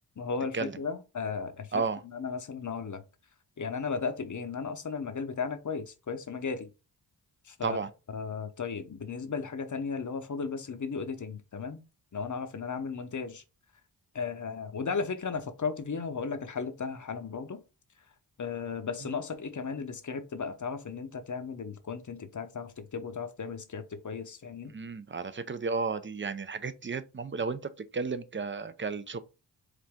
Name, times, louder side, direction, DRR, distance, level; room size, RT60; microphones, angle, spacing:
voice 1, 0.2-1.8 2.1-3.0 3.6-6.7 7.5-7.8 8.1-11.8 12.1-13.4 14.1-17.6 18.4-24.7, left 5 dB, 40° left, 0.8 m, -35 dB
voice 2, 1.7-2.0 7.6-7.9 24.7-27.6 27.9-29.2, right 4 dB, 30° right, 0.5 m, -33 dB
4.9 x 2.5 x 3.5 m
cardioid pair, 55°, 44 cm